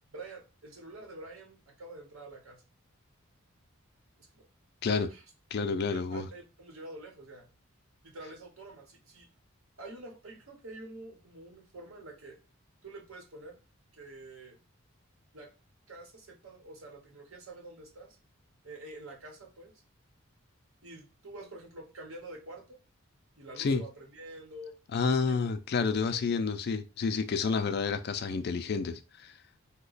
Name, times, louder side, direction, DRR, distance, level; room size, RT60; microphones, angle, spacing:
voice 1, 0.1-2.6 4.2-4.5 5.1-5.2 5.9-7.5 8.0-9.3 9.8-12.4 12.8-13.6 13.9-14.6 15.3-15.5 15.9-18.2 18.6-19.7 20.8-22.8 23.4-25.5 25.8-26.3, right 2 dB, 75° right, 1.0 m, -47 dB
voice 2, 5.5-6.3 23.6-23.8 24.9-29.3, left 4 dB, 50° left, 0.4 m, -29 dB
3.0 x 2.2 x 3.9 m
head